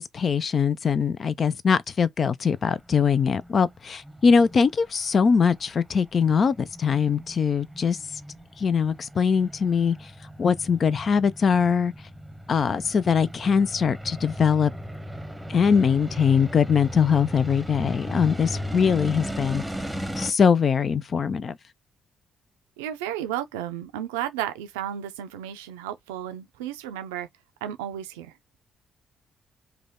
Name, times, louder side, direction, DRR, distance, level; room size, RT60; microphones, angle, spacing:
voice 1, 0.0-8.0 8.6-10.0 10.4-11.9 12.5-14.7 15.5-19.6 20.2-21.6, left 6 dB, 50° left, 0.3 m, -22 dB
sound 1, 2.5-20.3, equal, 5° right, 0.9 m, -37 dB
voice 2, 22.8-27.3 27.6-28.3, right 11 dB, 85° right, 0.4 m, -33 dB
3.2 x 2.2 x 3.7 m
hypercardioid pair, 45°, 0 cm